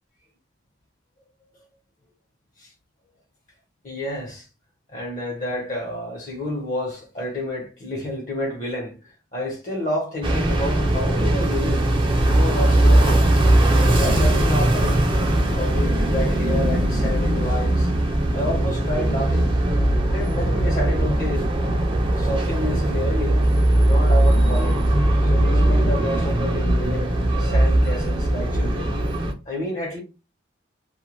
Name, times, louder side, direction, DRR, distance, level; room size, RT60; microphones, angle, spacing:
voice 1, 3.8-4.4 4.9-9.0 9.3-11.9 12.3-15.1 15.5-17.9 18.3-19.5 20.1-21.5 22.2-23.4 23.8-24.9 25.3-29.0 29.5-30.0, left 1 dB, 45° left, 1.0 m, -30 dB
sound 1, 10.2-29.3, right 1 dB, 25° right, 0.5 m, -19 dB
2.4 x 2.3 x 3.0 m
head